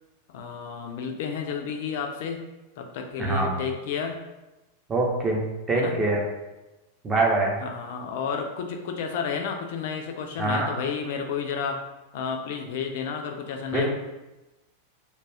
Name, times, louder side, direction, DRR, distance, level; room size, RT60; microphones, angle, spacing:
voice 1, 0.3-2.4 2.8-4.2 5.7-6.0 7.6-11.8 12.1-13.9, left 6 dB, 50° left, 4 dB, 0.4 m, -31 dB
voice 2, 3.2-3.5 4.9-6.2 7.0-7.6 10.4-10.7 13.7-13.9, right 2 dB, 20° right, -1 dB, 0.6 m, -24 dB
2.3 x 2.3 x 3.3 m, 1.0 s
figure-of-eight pair, 90°, 0 cm